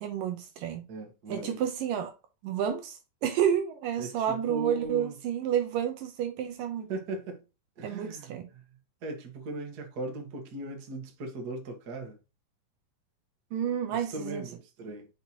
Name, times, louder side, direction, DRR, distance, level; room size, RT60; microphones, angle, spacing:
voice 1, 0.0-0.8 1.3-2.1 2.4-6.9 7.8-8.5 13.5-14.5, right 9 dB, 75° right, 2.3 m, -30 dB
voice 2, 0.9-1.6 4.0-5.2 6.9-7.4 7.8-8.6 9.0-12.2 13.9-15.1, right 2 dB, 50° right, 1.1 m, -38 dB
6.4 x 5.2 x 2.9 m
omnidirectional pair, 4.4 m